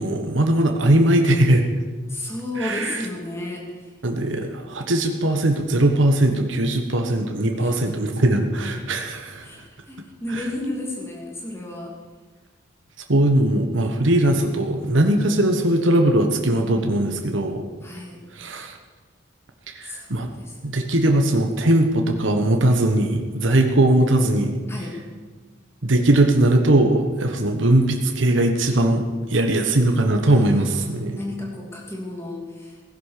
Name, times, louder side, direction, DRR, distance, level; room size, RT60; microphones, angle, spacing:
voice 1, 0.0-1.6 2.6-3.0 4.0-9.4 10.3-10.5 13.1-17.6 18.3-18.8 19.7-20.3 20.6-24.5 25.8-31.2, right 1 dB, 75° right, 4 dB, 1.3 m, -20 dB
voice 2, 2.1-3.9 7.6-7.9 9.4-11.9 17.8-18.2 19.8-20.6 24.7-25.0 30.2-32.8, left 1 dB, 15° left, -1 dB, 2.9 m, -33 dB
16.5 x 11.0 x 6.7 m, 1.4 s
head